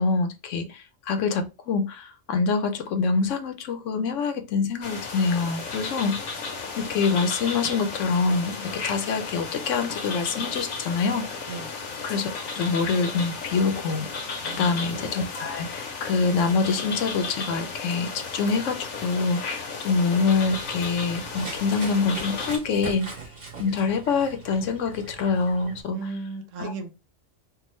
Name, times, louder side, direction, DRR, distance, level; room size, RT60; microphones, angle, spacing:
voice 1, 0.0-6.2 6.7-11.5 12.0-14.1 14.4-23.1 23.6-26.1 26.6-26.7, left 4 dB, 75° left, 0.9 m, -25 dB
sound 1, 4.8-22.6, left 4 dB, 90° left, 1.3 m, -34 dB
voice 2, 14.4-14.8 25.9-26.9, right 4 dB, 75° right, 1.0 m, -35 dB
Run, 20.3-25.8, right 4 dB, 45° right, 1.4 m, -41 dB
3.5 x 2.1 x 3.0 m
omnidirectional pair, 1.4 m